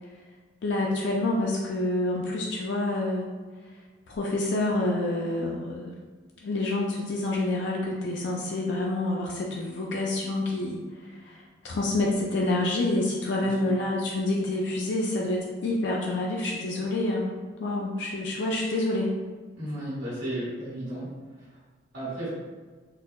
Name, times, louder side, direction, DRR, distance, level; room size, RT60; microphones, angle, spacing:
voice 1, 0.6-3.2 4.1-5.9 6.4-10.8 11.3-17.3 17.6-19.1, left 2 dB, 65° left, -2 dB, 0.4 m, -27 dB
voice 2, 19.6-21.1 21.4-21.5 21.9-22.3, right 1 dB, 85° right, -10 dB, 1.2 m, -34 dB
4.2 x 2.2 x 2.2 m, 1.4 s
head